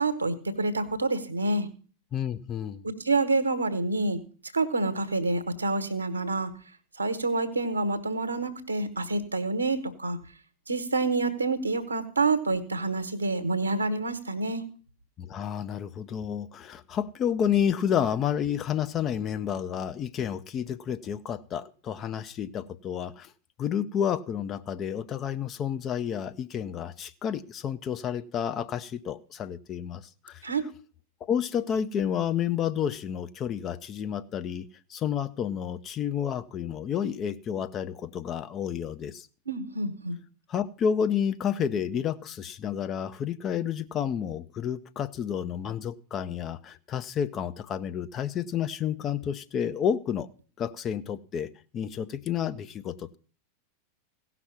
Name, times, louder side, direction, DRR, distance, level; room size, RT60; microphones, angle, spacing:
voice 1, 0.0-1.7 2.8-4.2 4.5-6.5 7.0-10.2 10.7-14.7 30.4-30.6 39.5-40.2, right 3 dB, 80° right, 10 dB, 1.2 m, -27 dB
voice 2, 2.1-2.8 15.2-23.3 23.6-30.4 31.2-39.3 40.5-50.3 50.6-51.5 51.7-53.2, left 8 dB, 30° left, 10 dB, 0.6 m, -30 dB
16.5 x 5.9 x 5.8 m, 0.40 s
figure-of-eight pair, 90°, 0 cm